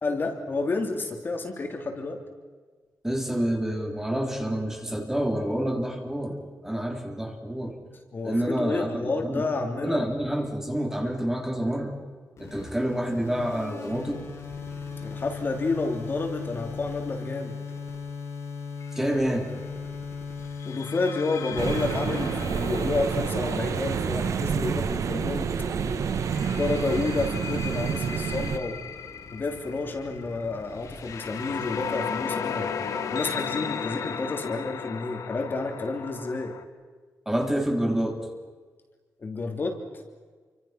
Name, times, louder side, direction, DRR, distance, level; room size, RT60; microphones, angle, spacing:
voice 1, 0.0-2.2 8.1-10.0 15.0-17.6 20.6-25.5 26.6-28.8 29.3-32.7 33.1-36.5 39.2-39.8, left 3 dB, 35° left, 4 dB, 3.0 m, -30 dB
voice 2, 3.0-6.4 6.6-7.8 8.2-9.5 9.8-12.0 12.4-14.3 19.0-19.5 37.3-38.2, right 1 dB, 5° right, 3 dB, 3.5 m, -28 dB
sound 1, 12.4-31.9, left 5 dB, 55° left, 6.9 m, -39 dB
sound 2, 18.8-19.1 20.6-25.4 26.2-36.6, left 6 dB, 70° left, 1.9 m, -36 dB
sound 3, 21.6-28.6, right 6 dB, 65° right, 1.4 m, -28 dB
29.0 x 25.0 x 5.9 m, 1.5 s
wide cardioid pair, 145°, 6 cm